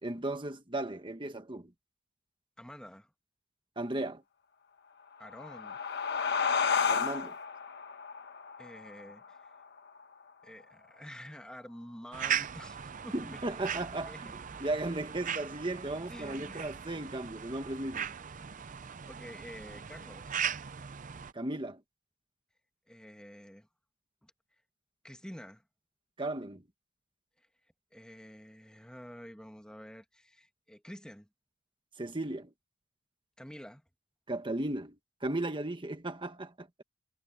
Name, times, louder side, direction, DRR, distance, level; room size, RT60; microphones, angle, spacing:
voice 1, 0.0-1.7 3.8-4.2 6.9-7.3 13.1-14.1 14.6-18.1 21.3-21.8 26.2-26.6 32.0-32.5 34.3-35.0 35.2-36.8, right 2 dB, 25° right, 1.5 m, -35 dB
voice 2, 2.6-3.1 5.2-5.8 8.6-9.6 10.4-13.4 14.1-14.2 16.1-16.9 19.0-20.4 22.9-23.7 24.2-24.3 25.0-25.6 27.4-27.5 27.9-31.3 33.4-33.8, equal, 5° left, 2.0 m, -49 dB
sound 1, 5.1-10.3, left 6 dB, 55° left, 1.2 m, -33 dB
sound 2, 12.1-21.3, right 8 dB, 40° right, 0.6 m, -38 dB
head